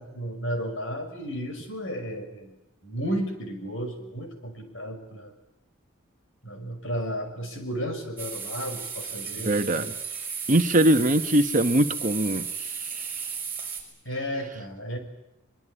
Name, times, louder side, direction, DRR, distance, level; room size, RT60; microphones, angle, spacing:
voice 1, 0.0-2.5 2.8-5.3 6.4-9.9 14.0-15.0, equal, 60° left, 6 dB, 6.1 m, -33 dB
sound 1, 8.2-13.8, right 6 dB, 10° right, 6.3 m, -34 dB
voice 2, 9.4-9.9 10.5-13.1, right 1 dB, 35° right, 9 dB, 1.2 m, -22 dB
23.5 x 23.0 x 10.0 m, 0.87 s
head